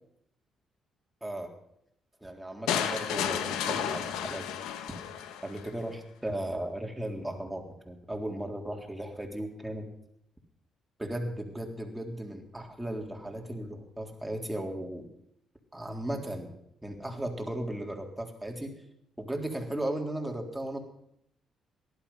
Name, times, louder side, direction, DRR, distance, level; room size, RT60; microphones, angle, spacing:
voice 1, 2.2-4.5 5.4-9.9 11.0-15.1 15.7-16.5 16.8-18.8 19.2-20.8, right 1 dB, 10° right, 2 dB, 3.7 m, -36 dB
sound 1, 2.7-5.7, left 9 dB, 85° left, 1.2 m, -32 dB
18.5 x 12.0 x 5.8 m, 0.75 s
supercardioid pair, 70°, 0 cm